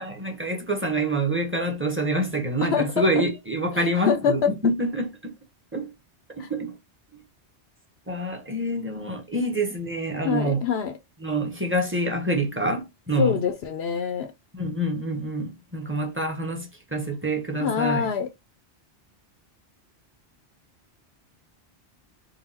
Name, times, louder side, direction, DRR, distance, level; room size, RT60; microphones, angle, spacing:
voice 1, 0.0-5.3 5.7-5.9 6.3-6.8 8.1-10.6 11.2-13.4 14.5-18.1, right 1 dB, 10° right, 1.0 m, -26 dB
voice 2, 2.6-3.3 3.7-4.5 6.4-6.5 10.2-10.9 13.2-14.3 17.6-18.3, left 7 dB, 70° left, 0.8 m, -25 dB
4.0 x 2.2 x 4.1 m
omnidirectional pair, 1.1 m